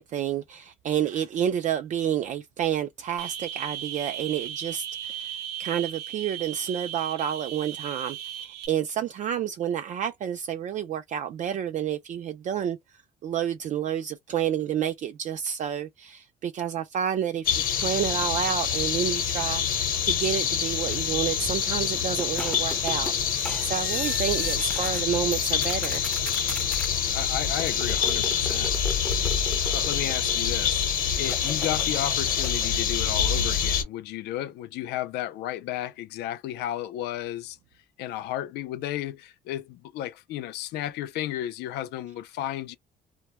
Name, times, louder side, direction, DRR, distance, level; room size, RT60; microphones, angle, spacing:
voice 1, 0.0-5.3 5.6-12.8 13.2-26.0, right 9 dB, 45° right, 0.4 m, -29 dB
sound 1, 3.2-8.7, right 10 dB, 75° right, 0.7 m, -36 dB
sound 2, 17.4-33.8, left 8 dB, 55° left, 0.9 m, -26 dB
sound 3, 22.2-25.0 25.3-26.9 27.6-30.6 31.2-32.7, left 1 dB, 5° left, 0.5 m, -37 dB
voice 2, 27.1-28.7 29.6-30.8 31.2-37.6 38.0-42.8, left 12 dB, 80° left, 0.4 m, -33 dB
2.2 x 2.1 x 2.9 m
cardioid pair, 110°, 17 cm